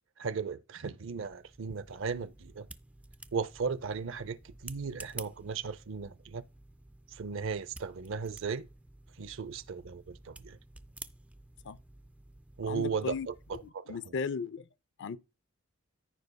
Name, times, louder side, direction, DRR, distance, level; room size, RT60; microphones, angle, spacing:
voice 1, 0.2-2.7 3.3-6.4 7.1-8.7 9.2-10.6 12.6-14.1, right 5 dB, 60° right, 0.6 m, -36 dB
sound 1, 1.0-13.7, right 2 dB, 5° right, 0.3 m, -52 dB
voice 2, 12.7-13.3 13.9-14.7 15.0-15.2, left 5 dB, 55° left, 0.5 m, -35 dB
14.5 x 5.3 x 2.2 m
head